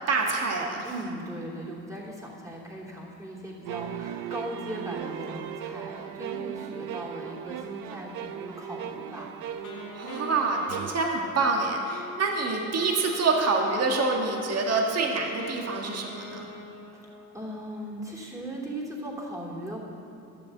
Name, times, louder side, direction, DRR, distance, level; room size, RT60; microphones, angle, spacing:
voice 1, 0.1-0.9 9.9-16.5, right 3 dB, 55° right, 1 dB, 1.7 m, -26 dB
voice 2, 0.8-9.4 16.9-19.8, right 1 dB, 10° right, -3 dB, 3.1 m, -38 dB
sound 1, 3.6-10.9, right 9 dB, 85° right, 0.7 m, -37 dB
Wind instrument woodwind instrument, 9.6-17.5, left 4 dB, 80° left, 1.9 m, -43 dB
12.0 x 7.0 x 7.9 m, 2.8 s
cardioid pair, 90°, 30 cm